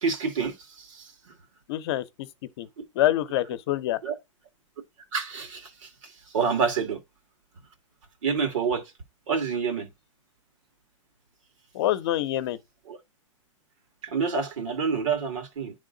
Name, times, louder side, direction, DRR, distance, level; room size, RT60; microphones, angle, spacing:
voice 1, 0.0-0.5 4.0-4.1 5.1-5.6 6.3-7.0 8.2-8.8 9.3-9.9 12.9-13.0 14.1-15.7, right 5 dB, 80° right, 2.1 m, -27 dB
voice 2, 1.7-2.0 2.6-2.7 3.0-4.0 11.7-12.6, left 13 dB, 50° left, 0.8 m, -25 dB
10.5 x 3.6 x 3.8 m
hypercardioid pair, 150°, 16 cm